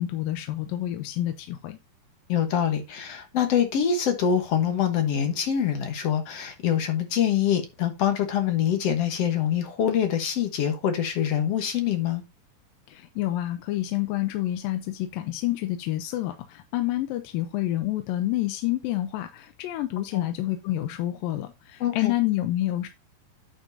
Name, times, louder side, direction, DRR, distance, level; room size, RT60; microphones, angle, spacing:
voice 1, 0.0-1.8 12.9-22.9, left 15 dB, 90° left, 2.4 m, -28 dB
voice 2, 2.3-12.2 20.1-20.2 21.8-22.1, left 9 dB, 60° left, 1.8 m, -25 dB
9.1 x 6.3 x 2.6 m
omnidirectional pair, 4.0 m